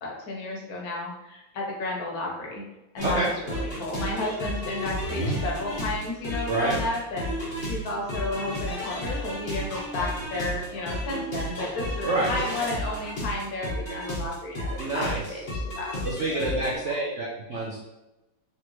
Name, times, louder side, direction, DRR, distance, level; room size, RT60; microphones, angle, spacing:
voice 1, 0.0-2.6 2.9-7.3 7.7-16.0 16.3-16.4 16.7-16.9, left 2 dB, 55° left, -2 dB, 1.4 m, -32 dB
sound 1, 3.0-16.8, equal, 35° left, 0.9 m, -32 dB
voice 2, 14.8-15.2 16.0-17.8, right 2 dB, 65° right, -3 dB, 0.7 m, -27 dB
4.1 x 3.1 x 3.1 m, 0.98 s
omnidirectional pair, 2.0 m